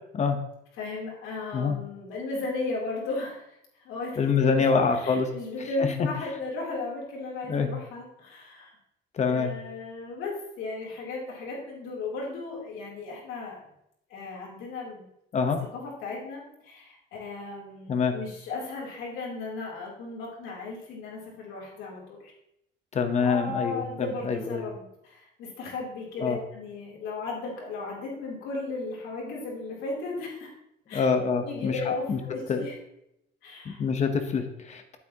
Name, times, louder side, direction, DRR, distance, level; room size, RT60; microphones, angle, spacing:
voice 1, 0.8-3.6 3.8-8.7 9.3-13.6 14.1-15.0 15.7-22.3 23.2-30.5 30.9-31.0 31.4-32.8 33.4-33.8, left 3 dB, 90° left, -4 dB, 3.3 m, -35 dB
voice 2, 4.2-5.3 5.8-6.1 7.5-7.7 9.1-9.5 15.3-15.6 17.9-18.1 22.9-24.6 26.2-26.4 30.9-31.7 32.1-32.2 32.5-32.6 33.6-35.0, left 5 dB, 35° left, 7 dB, 1.0 m, -25 dB
9.1 x 8.3 x 2.9 m, 0.79 s
cardioid pair, 160°, 20 cm